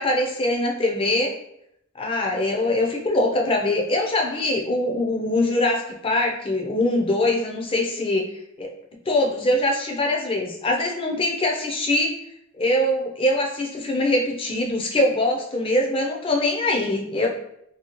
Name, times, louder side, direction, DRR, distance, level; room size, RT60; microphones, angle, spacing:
voice 1, 0.0-1.4 2.0-8.2 8.6-8.7 9.1-12.1 12.6-17.3, left 1 dB, 25° left, 1 dB, 0.4 m, -23 dB
2.8 x 2.7 x 2.9 m, 0.76 s
head